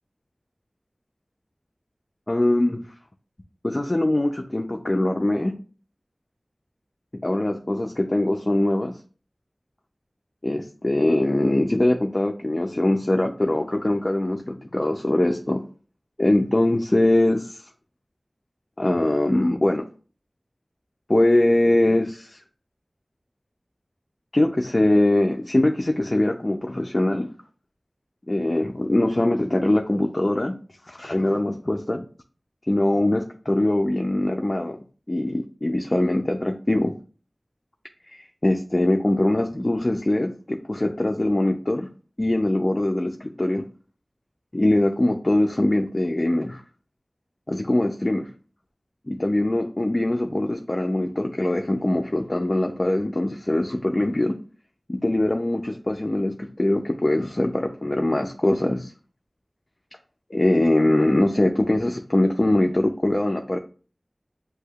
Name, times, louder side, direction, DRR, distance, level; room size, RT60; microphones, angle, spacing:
voice 1, 2.3-2.8 3.6-5.6 7.2-9.0 10.4-15.6 16.2-17.7 18.8-19.8 21.1-22.4 24.3-27.3 28.3-30.5 30.9-32.0 32.7-34.8 35.1-36.9 38.1-41.9 42.2-43.6 44.5-46.6 47.5-48.3 49.1-54.4 54.9-58.9 60.3-63.6, left 1 dB, 40° left, 3 dB, 0.5 m, -22 dB
7.9 x 2.8 x 2.3 m, 0.39 s
wide cardioid pair, 55°, 0 cm